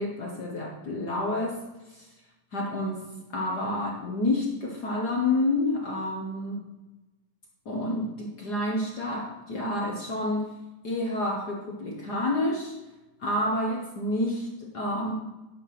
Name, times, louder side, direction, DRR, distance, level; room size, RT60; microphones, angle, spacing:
voice 1, 0.0-1.6 1.9-2.1 2.5-3.0 3.3-6.6 7.6-10.6 10.8-12.8 13.2-15.1, left 1 dB, 55° left, -1 dB, 1.1 m, -29 dB
11.5 x 4.3 x 5.9 m, 1.0 s
omnidirectional pair, 3.5 m